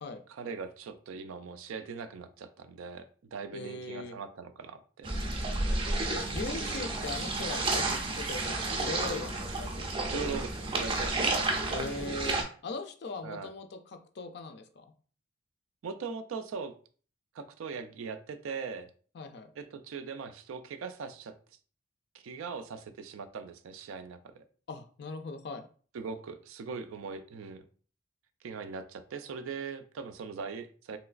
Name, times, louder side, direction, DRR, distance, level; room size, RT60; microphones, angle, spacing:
voice 1, 0.3-5.1 7.8-8.0 10.1-11.3 13.2-13.5 15.8-16.7 17.3-18.9 19.6-21.3 22.2-24.4 25.9-27.7 28.4-31.0, right 5 dB, 85° right, 8 dB, 0.4 m, -40 dB
voice 2, 3.5-4.1 6.1-9.9 10.1-10.2 11.7-14.9 19.1-19.5 24.7-25.7, left 3 dB, 55° left, 7 dB, 0.4 m, -40 dB
sound 1, 5.0-12.4, right 2 dB, 25° right, 0.4 m, -31 dB
3.1 x 2.9 x 2.4 m, 0.42 s
head